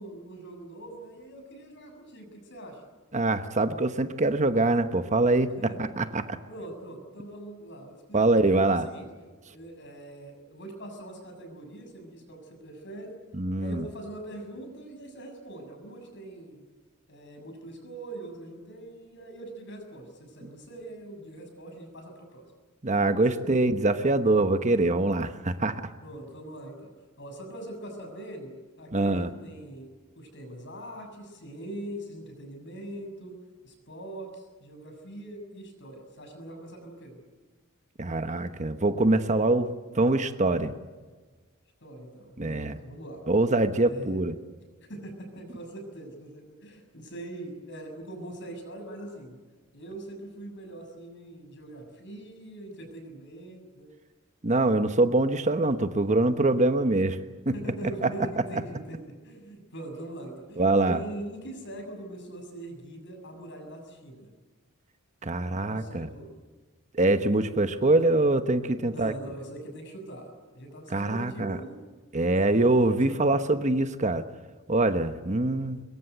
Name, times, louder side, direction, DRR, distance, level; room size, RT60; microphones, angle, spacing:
voice 1, 0.0-2.8 5.7-5.9 6.5-9.1 9.5-13.2 13.6-16.6 17.1-22.5 23.1-23.4 26.0-26.9 27.2-33.3 33.6-37.2 41.8-43.2 43.8-44.2 44.9-49.4 49.7-53.9 57.5-64.3 65.4-66.4 68.8-71.8 72.5-73.3, right 1 dB, 55° left, 5 dB, 6.9 m, -42 dB
voice 2, 3.1-5.5 6.0-6.4 8.1-8.9 13.4-13.8 22.8-25.8 28.9-29.3 38.0-40.7 42.4-42.8 43.3-44.3 54.4-57.2 57.4-57.5 58.0-58.1 60.6-61.0 65.2-66.1 66.9-69.1 70.9-71.6 72.1-74.2 74.7-75.8, right 2 dB, 35° right, 9 dB, 1.1 m, -24 dB
23.5 x 22.5 x 8.0 m, 1.4 s
head